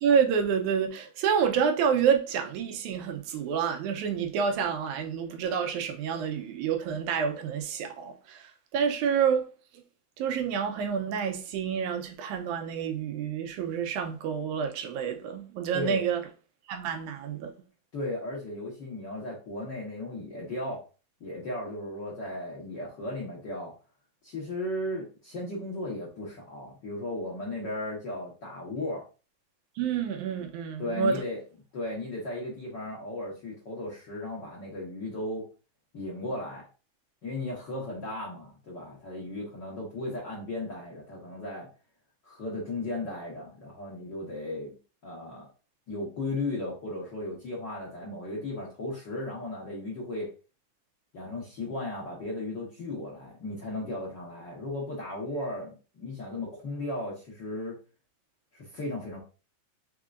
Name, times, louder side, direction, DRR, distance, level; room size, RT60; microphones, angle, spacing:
voice 1, 0.0-9.5 10.2-16.2 16.7-17.5 29.8-31.2, right 7 dB, 85° right, 2.0 m, -28 dB
voice 2, 17.9-20.8 21.2-23.7 24.2-29.0 30.8-31.4 31.7-35.5 35.9-36.6 37.2-41.7 42.2-44.7 45.0-45.5 45.9-50.3 51.1-57.8 58.5-59.2, left 1 dB, 55° left, 1.2 m, -36 dB
5.0 x 3.7 x 2.5 m
omnidirectional pair, 3.5 m